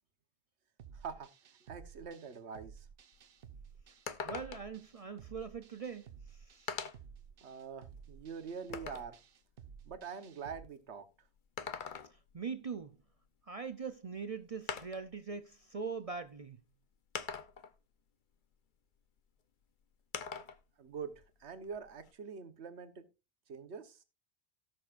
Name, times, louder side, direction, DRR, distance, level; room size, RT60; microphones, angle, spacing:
sound 1, 0.8-10.7, right 7 dB, 60° right, 0.9 m, -54 dB
voice 1, 0.9-1.3 1.6-2.9 7.4-9.2 9.8-11.1 20.8-23.1 23.5-24.0, right 6 dB, 85° right, 1.4 m, -45 dB
sound 2, 3.1-3.2 3.6-3.7 4.1-4.8 5.9-6.0 6.7-7.2 7.7-9.1 11.4-12.3 13.8-13.9 14.7-15.1 16.1-16.2 17.2-17.8 20.1-20.6 21.0-22.1, left 6 dB, 50° left, 0.9 m, -43 dB
voice 2, 4.2-6.7 12.1-13.0 13.4-16.6, right 5 dB, 40° right, 0.6 m, -42 dB
18.0 x 6.2 x 2.5 m
omnidirectional pair, 1.1 m